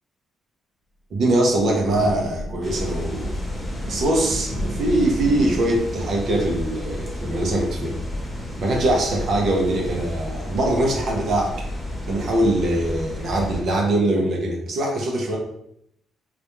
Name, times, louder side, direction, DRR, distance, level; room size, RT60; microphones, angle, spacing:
voice 1, 1.1-3.3 3.9-8.0 8.6-11.6 12.1-15.4, right 1 dB, 65° right, 0 dB, 0.6 m, -22 dB
Thunder / Rain, 1.3-9.9, equal, 45° left, 0.8 m, -35 dB
sound 1, 2.6-13.6, left 1 dB, 15° left, 0.8 m, -32 dB
2.4 x 2.2 x 2.9 m, 0.75 s
cardioid pair, 90°, 0 cm